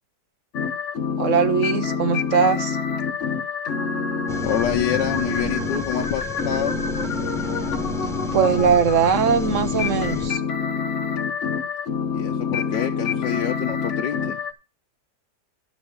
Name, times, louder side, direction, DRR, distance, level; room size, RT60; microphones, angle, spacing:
sound 1, 0.5-14.5, left 5 dB, 45° left, 1.3 m, -26 dB
voice 1, 1.2-2.8 8.3-10.4, right 6 dB, 50° right, 12 dB, 1.2 m, -20 dB
sound 2, 4.3-10.3, left 2 dB, ahead, 1.0 m, -34 dB
voice 2, 4.4-6.8 12.1-14.4, left 10 dB, 80° left, 2 dB, 1.4 m, -27 dB
12.0 x 6.5 x 5.0 m, 0.30 s
omnidirectional pair, 1.9 m